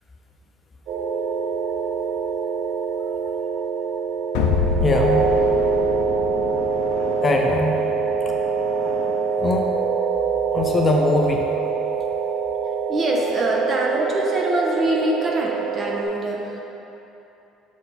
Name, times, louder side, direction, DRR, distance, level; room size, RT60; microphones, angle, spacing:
sound 1, 0.9-16.0, right 6 dB, 65° right, 0.7 m, -24 dB
sound 2, 4.3-9.4, left 5 dB, 85° left, 0.4 m, -28 dB
voice 1, 4.8-5.3 7.2-7.8 9.3-9.7 10.5-11.5, left 2 dB, 25° left, 1 dB, 0.5 m, -21 dB
voice 2, 12.9-16.6, right 1 dB, 30° right, -1 dB, 0.9 m, -24 dB
6.5 x 4.6 x 4.1 m, 3.0 s
cardioid pair, 120°, 0 cm